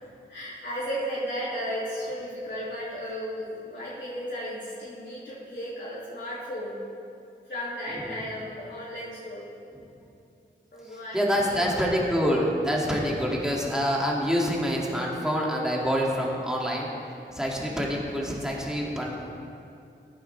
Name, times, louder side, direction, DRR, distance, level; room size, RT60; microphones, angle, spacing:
voice 1, 0.3-6.8 7.4-9.5 10.7-12.0 18.0-18.2, equal, 65° left, -10 dB, 2.7 m, -35 dB
voice 2, 11.1-16.9 17.3-19.1, equal, 5° right, -3 dB, 2.4 m, -26 dB
15.0 x 10.5 x 3.5 m, 2.5 s
cardioid pair, 50°, 20 cm